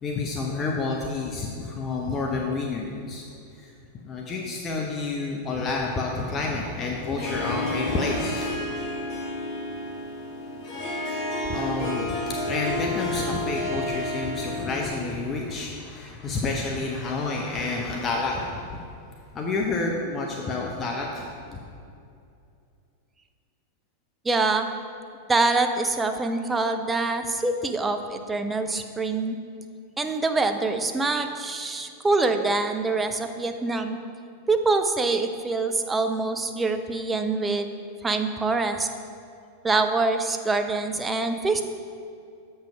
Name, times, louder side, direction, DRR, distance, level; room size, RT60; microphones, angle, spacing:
voice 1, 0.0-3.3 3.6-3.7 4.0-8.6 11.5-18.8 19.3-21.6, left 3 dB, 25° left, 0 dB, 0.7 m, -29 dB
Harp, 7.0-14.9, left 1 dB, 40° left, 1.6 m, -31 dB
voice 2, 24.2-24.7 25.3-29.4 30.0-34.0 34.5-37.7 38.0-38.9 39.6-41.6, right 3 dB, 15° right, 7 dB, 0.5 m, -25 dB
7.4 x 5.5 x 4.9 m, 2.5 s
figure-of-eight pair, 90°, 0 cm